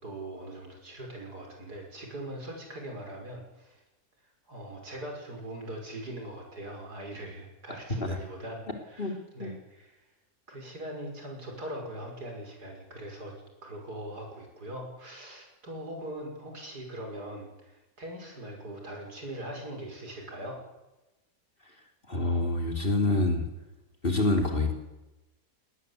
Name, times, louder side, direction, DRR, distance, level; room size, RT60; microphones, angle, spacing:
voice 1, 0.0-3.8 4.5-9.9 10.5-13.3 13.6-20.6, right 1 dB, 75° right, 1 dB, 6.3 m, -41 dB
voice 2, 22.1-23.5 24.0-24.7, left 2 dB, 35° left, 4 dB, 3.4 m, -26 dB
20.0 x 19.5 x 8.4 m, 1.0 s
omnidirectional pair, 1.7 m